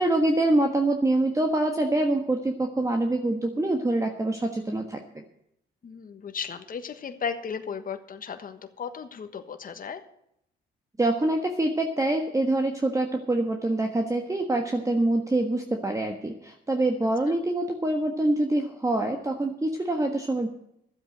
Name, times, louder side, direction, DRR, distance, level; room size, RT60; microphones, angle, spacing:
voice 1, 0.0-5.2 11.0-20.5, right 2 dB, 15° right, 3 dB, 1.4 m, -25 dB
voice 2, 5.8-10.0, left 6 dB, 45° left, 8 dB, 1.4 m, -35 dB
12.0 x 8.1 x 7.9 m, 0.77 s
cardioid pair, 90°, 20 cm